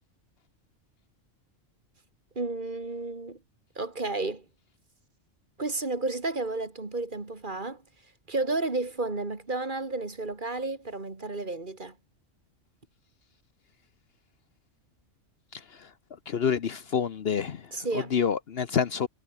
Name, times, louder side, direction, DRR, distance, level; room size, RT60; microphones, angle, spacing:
voice 1, 2.4-3.4 3.8-4.4 5.6-7.8 8.3-11.9 17.7-18.2, right 3 dB, 40° right, 2.4 m, -32 dB
voice 2, 16.3-17.6 18.1-19.1, left 7 dB, 55° left, 1.0 m, -27 dB
omnidirectional pair, 1.3 m